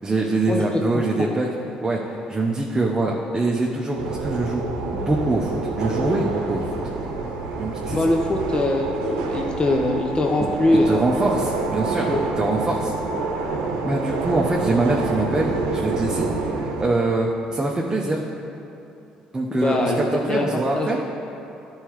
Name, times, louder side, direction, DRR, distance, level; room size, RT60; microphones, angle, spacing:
voice 1, 0.0-1.5 1.8-2.0 2.3-4.6 4.9-6.7 7.6-8.0 10.9-12.1 12.4-12.9 13.8-18.2 19.3-21.0, right 2 dB, 25° right, -2 dB, 0.8 m, -24 dB
voice 2, 0.9-1.3 7.9-11.1 12.1-12.2 19.5-20.5 20.7-20.9, left 1 dB, 30° left, 1 dB, 0.7 m, -22 dB
sound 1, 4.0-16.8, right 3 dB, 85° right, 0.8 m, -27 dB
11.0 x 4.7 x 3.1 m, 2.9 s
hypercardioid pair, 60°, 3 cm